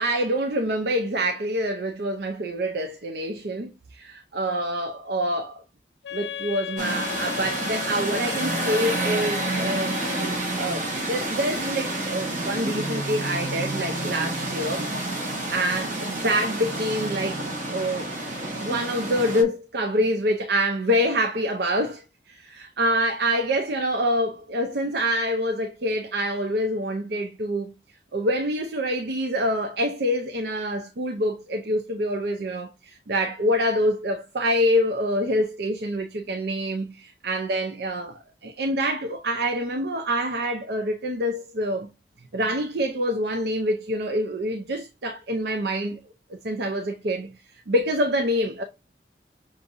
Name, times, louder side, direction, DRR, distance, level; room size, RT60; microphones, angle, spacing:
voice 1, 0.0-5.6 6.1-10.0 10.5-18.1 18.6-27.7 28.1-41.9 42.3-46.0 46.4-47.3 47.7-48.6, equal, 60° right, 0.5 m, -26 dB
Wind instrument woodwind instrument, 6.0-10.5, left 12 dB, 80° left, 0.5 m, -36 dB
sound 1, 6.8-19.4, right 2 dB, 45° right, 1.2 m, -29 dB
6.3 x 2.6 x 2.6 m
head